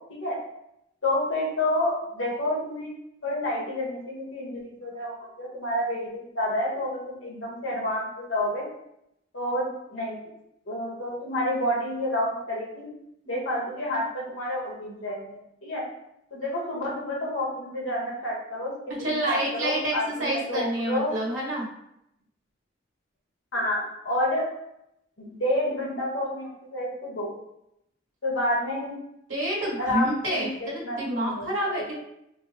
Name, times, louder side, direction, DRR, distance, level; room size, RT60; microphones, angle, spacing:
voice 1, 1.0-2.9 3.2-8.6 9.3-10.2 10.7-12.9 13.3-15.8 16.3-18.7 19.0-21.1 23.5-24.4 25.2-27.3 28.2-29.0 29.8-31.9, left 1 dB, 75° left, -3 dB, 1.1 m, -29 dB
voice 2, 19.0-21.7 29.3-32.0, right 1 dB, 75° right, -4 dB, 1.2 m, -28 dB
4.5 x 2.0 x 2.6 m, 0.80 s
head